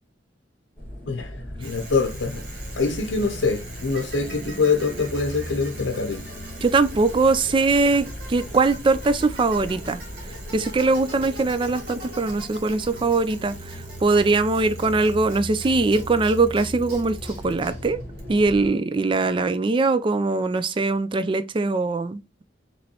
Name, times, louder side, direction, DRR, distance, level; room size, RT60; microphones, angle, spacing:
sound 1, 0.8-18.7, equal, 10° left, 1.7 m, -38 dB
voice 1, 1.1-2.4 2.8-6.2, left 4 dB, 80° left, 0.6 m, -24 dB
Bicycle, 1.6-18.7, right 2 dB, 55° right, 1.6 m, -43 dB
voice 2, 6.6-10.0 10.5-13.5 14.0-18.0 18.3-22.4, right 3 dB, 25° right, 0.3 m, -21 dB
5.3 x 3.1 x 2.9 m
head